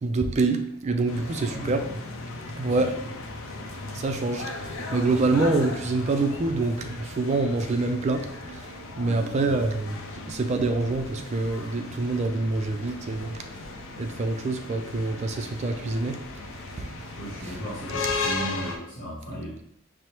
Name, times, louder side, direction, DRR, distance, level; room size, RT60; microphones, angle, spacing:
voice 1, 0.0-1.8 2.4-3.0 3.9-13.6 14.0-16.4 16.7-17.1 17.4-17.6, right 3 dB, 35° right, 6 dB, 0.3 m, -26 dB
sound 1, 1.1-18.8, left 3 dB, 85° left, 0.5 m, -37 dB
voice 2, 1.1-1.8 2.6-2.9 9.0-9.3 17.2-19.6, right 1 dB, 55° left, -7 dB, 0.9 m, -36 dB
4.6 x 2.0 x 2.9 m, 0.77 s
head